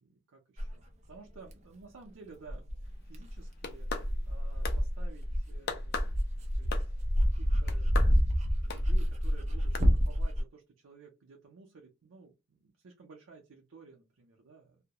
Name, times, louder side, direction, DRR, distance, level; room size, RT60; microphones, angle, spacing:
voice 1, 0.0-2.7 3.0-6.2 6.6-7.0 7.4-7.9 8.5-14.8, right 4 dB, 85° right, 1 dB, 0.5 m, -54 dB
Dog, 0.6-0.7 1.5-1.6 2.5-10.4, equal, 35° right, 0.4 m, -28 dB
sound 1, 3.4-4.4 4.7-4.8 5.7-6.1 6.7-7.1 7.7-8.2 8.7-8.9 9.7-9.8, left 4 dB, 50° left, 0.4 m, -37 dB
2.2 x 2.0 x 2.7 m, 0.26 s
head